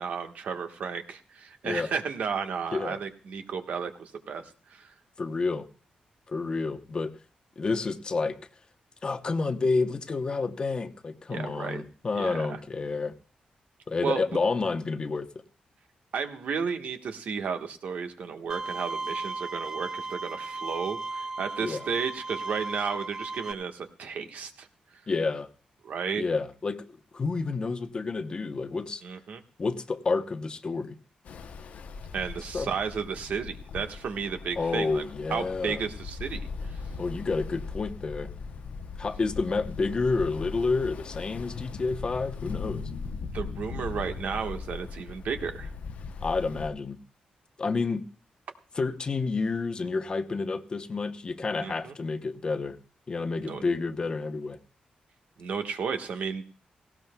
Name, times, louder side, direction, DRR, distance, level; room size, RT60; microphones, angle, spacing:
voice 1, 0.0-4.4 4.7-4.9 11.3-11.8 12.1-12.6 14.0-14.2 16.1-24.7 25.8-26.2 29.0-29.4 32.1-35.0 35.3-36.5 43.3-45.7 51.6-51.9 53.4-53.6 55.4-56.4, right 6 dB, 80° right, 6 dB, 1.3 m, -33 dB
voice 2, 5.2-5.6 6.3-7.1 7.6-8.4 9.0-13.1 13.9-15.4 21.6-21.8 25.1-25.5 26.2-26.9 27.1-29.0 29.6-30.9 32.5-32.7 34.6-35.8 37.0-38.3 39.0-42.9 46.2-47.0 47.6-48.0 48.7-52.8 53.1-54.6, left 4 dB, 35° left, 8 dB, 0.8 m, -29 dB
Bowed string instrument, 18.5-23.5, right 3 dB, 25° right, 0.9 m, -36 dB
Ocean, 31.2-46.7, left 4 dB, 70° left, 0.8 m, -39 dB
18.0 x 16.5 x 2.3 m, 0.41 s
wide cardioid pair, 120°, 3 cm